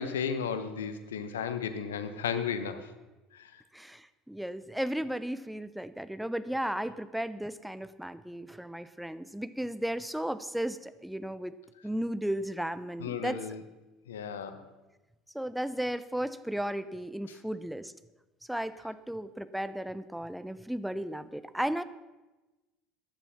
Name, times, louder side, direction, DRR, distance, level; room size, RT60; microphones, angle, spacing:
voice 1, 0.0-2.9 3.3-3.6 13.0-13.6 14.1-14.7, left 7 dB, 75° left, 10 dB, 1.1 m, -34 dB
voice 2, 3.7-11.6 11.8-13.4 15.3-17.9 18.5-21.8, right 1 dB, 5° right, 13 dB, 0.8 m, -35 dB
15.0 x 10.5 x 5.9 m, 1.1 s
figure-of-eight pair, 65°, 0 cm